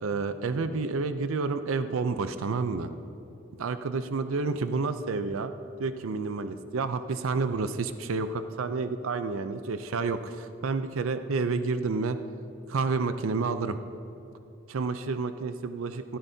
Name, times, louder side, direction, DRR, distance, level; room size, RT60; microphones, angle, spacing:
voice 1, 0.0-2.9 3.6-5.5 5.8-12.2 12.7-13.8 14.7-16.2, right 4 dB, 85° right, 10 dB, 0.5 m, -29 dB
15.0 x 12.5 x 2.7 m, 3.0 s
head